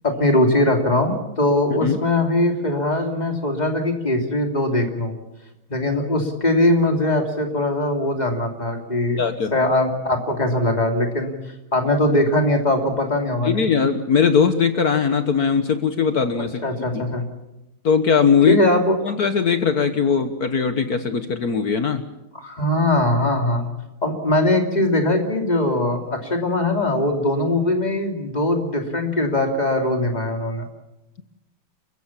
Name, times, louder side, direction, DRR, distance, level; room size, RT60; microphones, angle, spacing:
voice 1, 0.0-5.1 5.7-9.2 9.5-11.3 11.7-13.7 16.4-17.2 18.5-19.0 22.3-23.7 24.0-30.6, left 1 dB, 20° left, 3 dB, 3.0 m, -21 dB
voice 2, 9.2-9.5 13.4-16.6 16.9-17.0 17.8-18.6 19.0-22.0, left 6 dB, 55° left, 9 dB, 1.5 m, -20 dB
29.0 x 15.5 x 7.3 m, 0.96 s
omnidirectional pair, 2.2 m